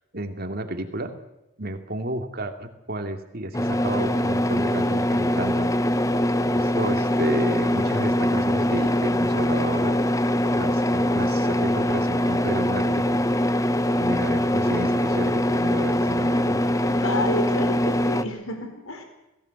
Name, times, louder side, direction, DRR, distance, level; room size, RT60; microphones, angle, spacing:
voice 1, 0.1-1.1 1.6-5.7 6.5-10.0 10.3-13.2 14.0-16.6, right 1 dB, 45° right, 6 dB, 2.6 m, -32 dB
sound 1, 3.5-18.2, left 1 dB, 15° left, 0.9 m, -23 dB
voice 2, 16.9-19.0, left 2 dB, 80° left, 6 dB, 4.3 m, -30 dB
23.0 x 17.0 x 8.2 m, 0.95 s
head